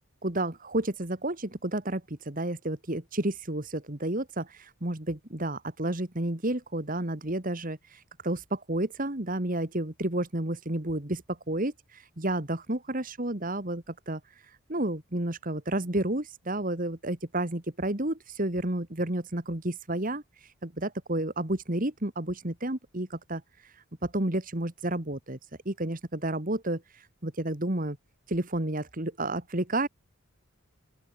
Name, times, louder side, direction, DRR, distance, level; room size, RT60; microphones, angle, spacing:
voice 1, 0.2-14.2 14.5-25.4 25.7-28.0 28.3-29.9, right 1 dB, 40° right, 2.1 m, -31 dB
open air
head